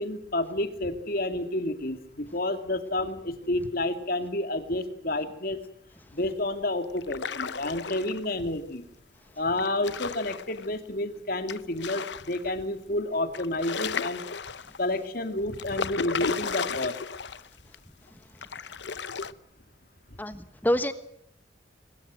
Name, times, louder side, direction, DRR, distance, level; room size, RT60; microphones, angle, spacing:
voice 1, 0.0-5.6 6.1-8.8 9.4-14.2 14.8-17.0, left 1 dB, 50° left, 8 dB, 2.6 m, -30 dB
sound 1, 7.0-8.3 9.6-10.7 11.5-12.5 12.9-13.0 13.3-14.9 15.5-17.5 17.7-17.8 18.4-19.3, left 5 dB, 65° left, 0.9 m, -34 dB
voice 2, 20.2-20.9, equal, 10° left, 11 dB, 1.2 m, -26 dB
22.5 x 21.5 x 7.7 m, 0.72 s
head